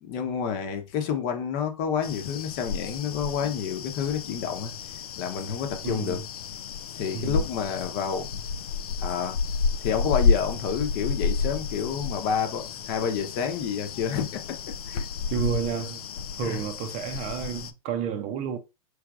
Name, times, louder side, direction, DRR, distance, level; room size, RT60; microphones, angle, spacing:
voice 1, 0.0-4.7 5.2-6.2 7.0-8.4 9.0-9.4 9.8-15.1 16.4-16.6, left 7 dB, 40° left, 0.9 m, -29 dB
sound 1, 2.0-17.7, left 5 dB, 70° left, 0.5 m, -31 dB
voice 2, 5.8-6.2 7.1-7.4 15.3-16.0 16.4-18.6, right 8 dB, 35° right, 0.6 m, -30 dB
4.8 x 3.2 x 2.4 m
hypercardioid pair, 105°, 19 cm